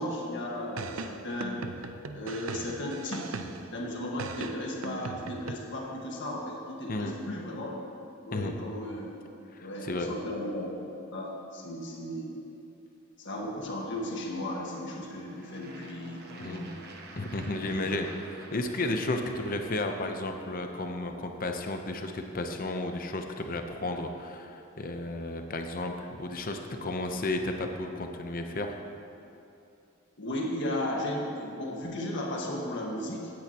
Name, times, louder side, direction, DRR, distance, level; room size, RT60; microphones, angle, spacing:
voice 1, 0.0-1.6 2.1-3.4 3.7-7.8 8.2-9.2 9.6-10.7 11.1-12.4 13.2-16.8 17.7-17.9 30.2-33.3, left 1 dB, 60° left, -2 dB, 1.7 m, -35 dB
sound 1, 0.8-3.8 4.2-5.5, right 4 dB, 80° right, 0.6 m, -38 dB
voice 2, 9.5-10.1 16.4-16.6 17.1-28.8, left 2 dB, 45° left, 5 dB, 0.8 m, -33 dB
sound 2, 13.7-20.2, right 2 dB, 50° right, 1.1 m, -50 dB
16.5 x 9.4 x 3.0 m, 2.8 s
head